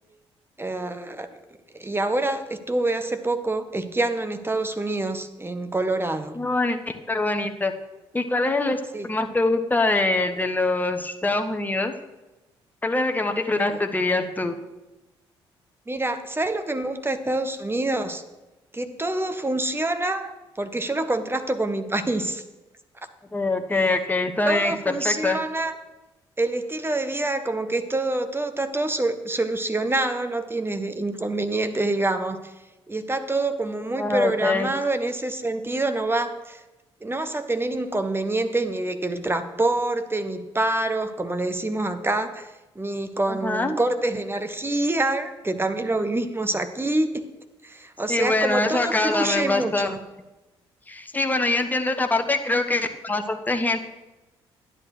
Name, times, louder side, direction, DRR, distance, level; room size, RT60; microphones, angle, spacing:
voice 1, 0.6-1.3 1.7-6.4 8.9-9.1 13.7-13.8 15.9-18.2 18.7-22.4 24.4-25.7 26.4-32.5 32.9-36.6 37.0-42.5 42.7-47.2 47.6-50.0, right 2 dB, 15° right, 9 dB, 1.0 m, -26 dB
voice 2, 6.4-7.7 8.1-11.9 12.8-14.6 23.3-25.4 34.0-34.7 43.3-43.8 48.1-50.0 50.9-53.9, left 2 dB, 15° left, 5 dB, 1.0 m, -24 dB
11.0 x 10.5 x 3.2 m, 1.1 s
figure-of-eight pair, 45°, 13 cm